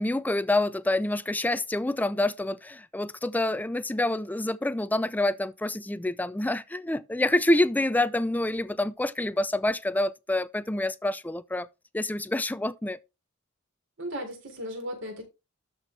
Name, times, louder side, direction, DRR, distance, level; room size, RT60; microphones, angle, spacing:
voice 1, 0.0-11.7 11.9-13.0, left 1 dB, 10° left, 0.4 m, -27 dB
voice 2, 14.0-15.2, equal, 65° right, 3.9 m, -36 dB
12.5 x 4.6 x 3.2 m
head